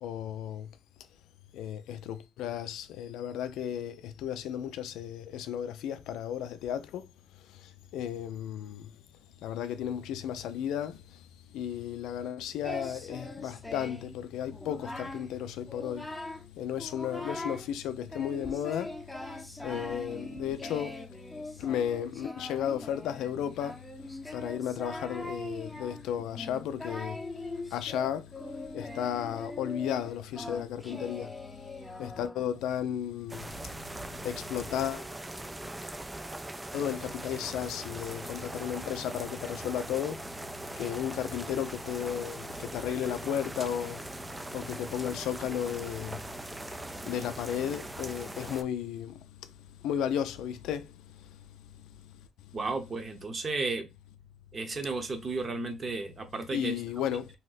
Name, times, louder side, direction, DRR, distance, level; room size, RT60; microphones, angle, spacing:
voice 1, 0.0-0.7 1.5-7.0 7.9-8.9 9.4-11.0 11.5-16.1 16.6-18.9 19.6-21.0 21.6-23.8 24.3-27.2 27.7-28.3 28.7-31.3 32.0-33.5 34.2-35.1 36.7-40.2 40.8-44.0 44.5-46.2 47.1-49.2 49.8-50.8 56.5-57.3, left 9 dB, 90° left, 0.3 m, -34 dB
Singing, 12.6-14.1 14.5-15.3 15.7-16.5 16.8-17.7 18.1-32.6, left 2 dB, 10° left, 0.7 m, -41 dB
sound 1, 33.3-48.6, right 1 dB, 15° right, 0.3 m, -41 dB
voice 2, 52.5-53.9 54.5-56.7, right 3 dB, 40° right, 0.8 m, -33 dB
2.8 x 2.1 x 3.8 m
cardioid pair, 90°, 0 cm